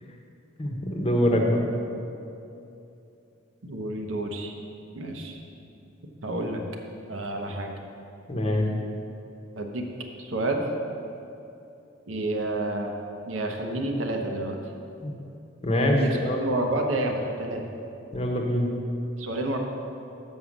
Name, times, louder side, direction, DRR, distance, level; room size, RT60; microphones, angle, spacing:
voice 1, 0.6-1.6 8.3-8.7 15.0-15.1 15.6-16.4 18.1-18.7, left 1 dB, 30° left, 0 dB, 0.9 m, -24 dB
voice 2, 3.6-4.5 4.9-5.4 6.2-6.6 7.1-7.7 9.6-9.8 10.2-10.6 12.1-12.9 13.2-14.6 16.0-17.6 19.2-19.6, right 2 dB, 85° right, 2 dB, 0.9 m, -29 dB
6.4 x 5.6 x 7.2 m, 2.7 s
head